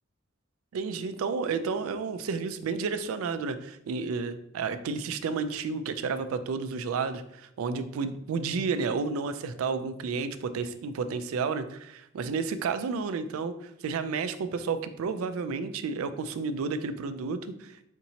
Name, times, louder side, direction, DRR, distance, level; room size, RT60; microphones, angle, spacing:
voice 1, 0.7-17.9, right 5 dB, 85° right, 11 dB, 0.3 m, -31 dB
5.1 x 2.7 x 2.8 m, 0.79 s
head